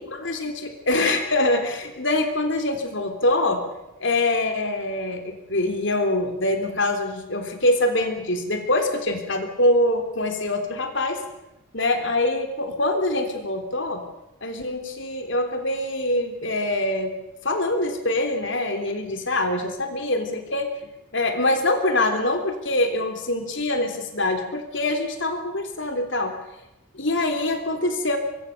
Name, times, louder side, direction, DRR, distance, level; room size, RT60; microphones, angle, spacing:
voice 1, 0.2-3.6 4.0-11.2 11.7-14.0 14.4-17.1 17.4-20.7 21.1-26.3 26.9-28.2, left 1 dB, 55° left, 5 dB, 3.6 m, -24 dB
25.0 x 23.5 x 6.7 m, 0.92 s
head